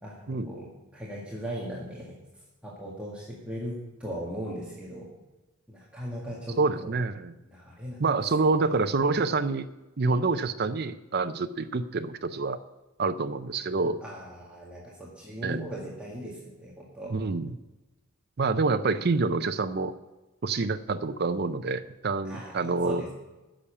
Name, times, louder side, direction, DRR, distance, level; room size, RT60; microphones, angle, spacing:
voice 1, 0.0-2.1 2.6-5.1 5.7-6.9 7.5-8.0 8.4-8.8 14.0-17.2 22.2-23.1, equal, 5° right, -6 dB, 1.8 m, -38 dB
voice 2, 6.6-7.3 8.0-9.7 10.0-12.6 13.0-14.0 15.4-15.6 17.1-17.5 18.4-19.9 20.4-23.0, right 3 dB, 50° right, 9 dB, 0.5 m, -27 dB
10.0 x 7.0 x 8.6 m, 1.1 s
head